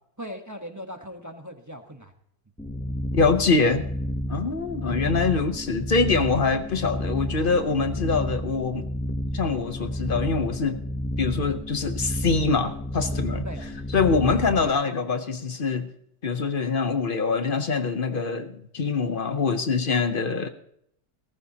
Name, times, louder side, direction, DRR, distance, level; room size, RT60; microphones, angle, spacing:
voice 1, 0.2-2.1 4.5-4.6 11.8-11.9 13.4-13.6 14.3-14.7, equal, 15° right, 4 dB, 0.8 m, -39 dB
sound 1, 2.6-14.7, equal, 5° left, 0.5 m, -31 dB
voice 2, 3.1-3.8 4.3-8.9 9.3-10.8 11.2-13.5 13.9-15.9 16.2-20.5, left 4 dB, 45° left, 9 dB, 0.7 m, -24 dB
18.5 x 14.5 x 2.9 m, 0.71 s
omnidirectional pair, 1.9 m